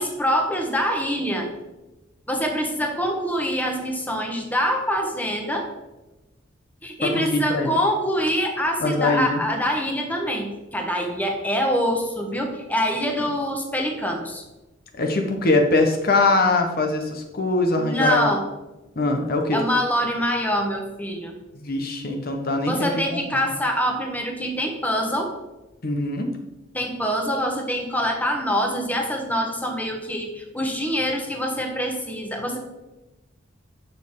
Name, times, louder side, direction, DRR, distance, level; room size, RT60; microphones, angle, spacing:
voice 1, 0.0-1.5 2.3-5.7 6.8-14.4 17.8-18.4 19.5-21.3 22.7-25.3 26.7-32.6, equal, 10° left, 2 dB, 1.2 m, -25 dB
voice 2, 7.0-7.7 8.8-9.4 14.9-18.3 19.0-19.6 21.6-23.4 25.8-26.3, left 2 dB, 50° left, 3 dB, 1.0 m, -22 dB
11.0 x 6.6 x 3.7 m, 1.0 s
head